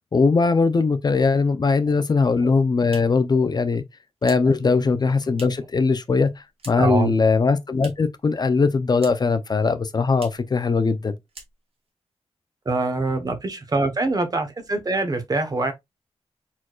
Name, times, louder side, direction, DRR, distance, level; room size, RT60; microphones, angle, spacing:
voice 1, 0.1-3.8 4.2-6.3 6.7-11.2, left 4 dB, 40° left, 0.5 m, -20 dB
sound 1, 2.4-5.8 6.1-7.0 7.3-8.2 8.5-9.4 9.7-9.8 10.1-10.5 10.9-11.0 11.3-11.9, right 3 dB, 60° right, 1.6 m, -46 dB
voice 2, 6.8-7.1 12.6-15.7, right 2 dB, 35° right, 1.0 m, -24 dB
4.6 x 4.3 x 2.3 m
wide cardioid pair, 125°, 11 cm